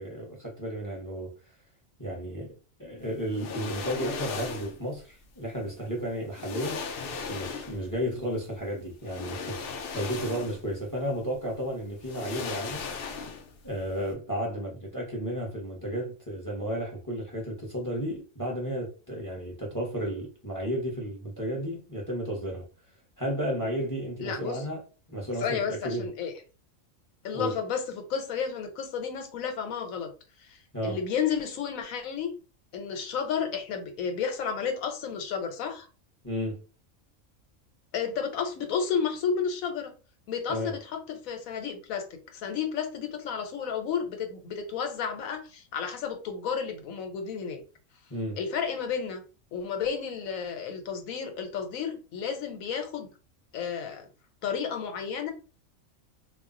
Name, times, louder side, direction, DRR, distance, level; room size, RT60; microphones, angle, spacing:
voice 1, 0.0-1.3 2.0-6.8 7.3-12.8 13.6-22.6 23.2-24.8 25.1-26.1 27.3-27.6 30.7-31.0 36.2-36.6 40.5-40.7 48.1-48.4, equal, 20° left, 0.6 m, -33 dB
sound 1, 3.3-4.8 5.9-6.0 6.3-7.9 9.0-10.7 11.1-11.2 12.0-13.6 13.9-14.1, left 5 dB, 65° left, 0.5 m, -36 dB
voice 2, 24.2-24.6 25.4-26.3 27.2-30.1 30.4-30.6 30.8-32.3 32.7-35.9 37.9-39.9 40.3-42.0 42.3-47.6 48.4-49.2 49.5-53.1 53.5-54.1 54.4-55.3, left 6 dB, 90° left, 1.1 m, -32 dB
2.3 x 2.0 x 3.7 m
omnidirectional pair, 1.4 m